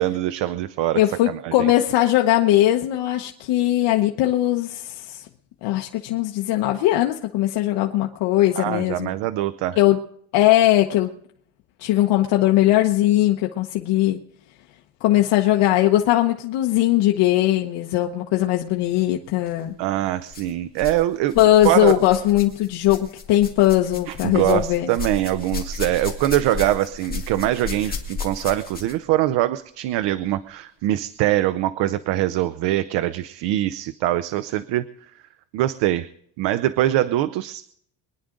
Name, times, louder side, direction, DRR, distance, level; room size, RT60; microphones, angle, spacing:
voice 1, 0.0-1.0 1.3-1.7 8.6-9.8 19.8-21.4 21.6-21.9 24.1-34.8 35.5-36.1 36.4-37.7, right 14 dB, 90° right, 12 dB, 0.7 m, -23 dB
voice 2, 0.9-5.2 5.6-9.1 9.8-10.0 10.3-11.1 11.8-14.2 15.0-19.7 21.4-24.9, left 14 dB, 85° left, 2 dB, 1.1 m, -19 dB
sound 1, 19.3-19.5 20.3-21.0 21.3-29.1 30.0-30.1 30.9-31.0, left 5 dB, 20° left, 2.3 m, -34 dB
23.5 x 10.0 x 3.8 m, 0.66 s
cardioid pair, 145°, 41 cm